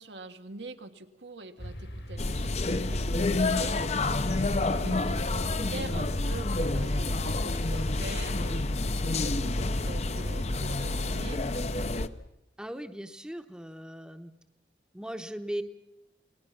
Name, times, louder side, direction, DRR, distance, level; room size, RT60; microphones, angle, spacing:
voice 1, 0.0-3.8 4.3-8.6 8.9-11.4, right 2 dB, 80° right, 6 dB, 1.6 m, -44 dB
sound 1, 1.6-11.0, equal, 85° left, 5.8 m, -40 dB
sound 2, 2.2-12.1, left 2 dB, 35° left, 0.7 m, -29 dB
voice 2, 12.6-14.3 14.9-15.6, equal, 5° right, 7 dB, 0.9 m, -38 dB
28.5 x 20.0 x 5.9 m, 0.93 s
head